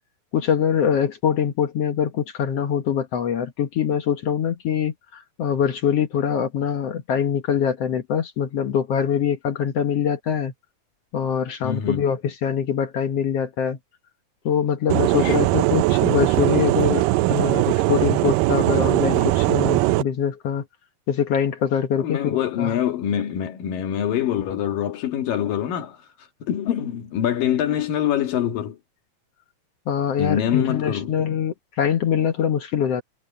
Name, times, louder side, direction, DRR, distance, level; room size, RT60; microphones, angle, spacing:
voice 1, 0.3-10.5 11.1-13.8 14.5-20.7 21.1-22.8 29.9-33.0, left 8 dB, 60° left, 1.9 m, -23 dB
voice 2, 11.6-12.1 15.2-15.5 16.5-16.6 22.0-26.0 26.4-28.8 30.2-31.2, left 10 dB, 80° left, 3.6 m, -25 dB
sound 1, 14.9-20.0, right 19 dB, 85° right, 2.3 m, -20 dB
omnidirectional pair, 3.9 m